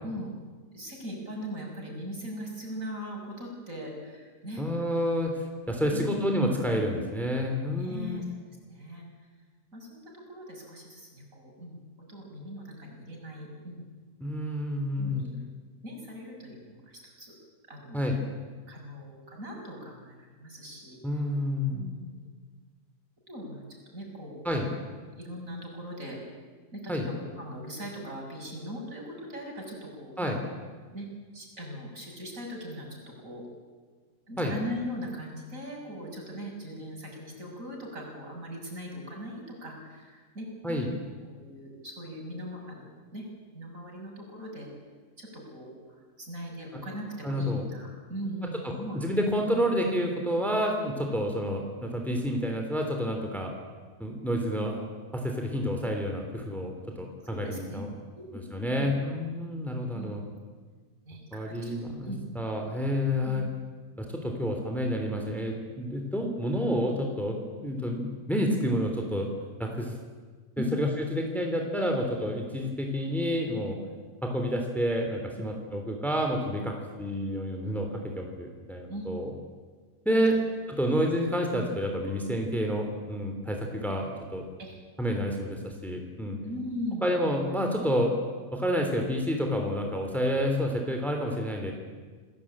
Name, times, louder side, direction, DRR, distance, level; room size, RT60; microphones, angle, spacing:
voice 1, 0.7-4.6 5.9-6.2 6.5-6.6 7.8-9.3 9.7-11.8 12.1-13.8 15.0-15.4 15.8-17.3 17.7-18.0 18.7-21.0 21.7-22.3 23.3-24.7 25.2-26.2 26.7-30.3 30.9-31.1 31.3-33.5 34.3-43.3 43.5-44.7 45.2-49.0 57.2-57.9 58.1-58.9 59.9-60.2 61.0-62.2 63.2-63.4 70.6-70.7 78.9-79.1 80.3-80.4 80.7-81.0 82.1-82.2 84.6-84.8 86.4-87.1, equal, 55° right, 0 dB, 6.9 m, -40 dB
voice 2, 4.6-5.3 5.7-8.2 14.2-15.2 17.9-18.2 21.0-21.8 24.4-24.7 26.9-27.1 30.2-30.4 34.4-34.5 40.6-40.9 47.2-47.6 48.6-53.5 54.0-54.9 55.1-57.9 58.3-60.2 61.3-63.4 64.0-69.3 69.6-69.9 70.6-73.8 74.2-79.3 80.0-80.4 80.7-84.5 85.0-86.4 87.0-88.1 88.5-91.7, equal, ahead, 2 dB, 3.1 m, -29 dB
28.5 x 19.0 x 8.8 m, 1.4 s
omnidirectional pair, 1.7 m